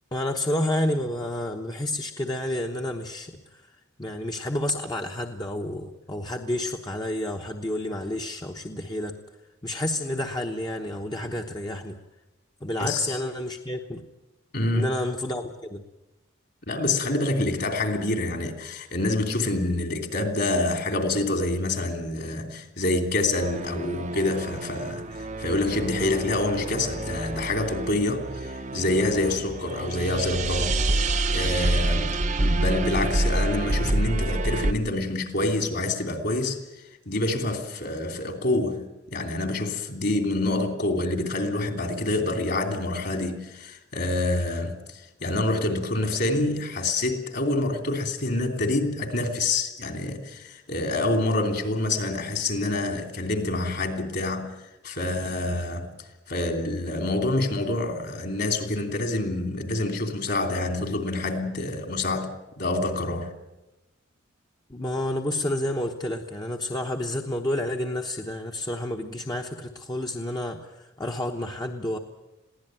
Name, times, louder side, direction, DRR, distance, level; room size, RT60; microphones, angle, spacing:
voice 1, 0.1-9.2 9.6-12.0 12.6-14.0 14.7-15.8 64.7-72.0, left 1 dB, 20° left, 1.0 m, -30 dB
voice 2, 12.8-13.2 14.5-14.9 16.7-30.8 31.3-36.6 37.0-54.5 54.8-63.3, left 2 dB, 55° left, 3.1 m, -27 dB
sound 1, 23.4-34.7, right 2 dB, 35° right, 0.8 m, -27 dB
22.0 x 16.0 x 9.0 m
head